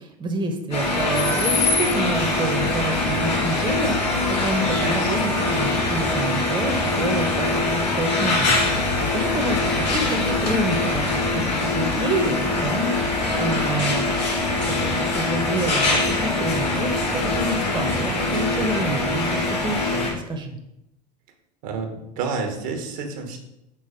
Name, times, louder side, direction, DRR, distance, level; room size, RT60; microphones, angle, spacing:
voice 1, 0.0-11.1 11.3-11.4 11.7-14.1 14.8-20.6, right 2 dB, 20° right, 4 dB, 1.1 m, -28 dB
sound 1, 0.7-20.1, left 2 dB, 85° left, 2.2 m, -23 dB
sound 2, 2.5-19.5, left 5 dB, 55° left, 0.9 m, -34 dB
voice 2, 21.6-23.4, right 4 dB, 60° right, 4 dB, 1.4 m, -29 dB
6.1 x 3.9 x 5.1 m, 0.84 s
hypercardioid pair, 80°, 21 cm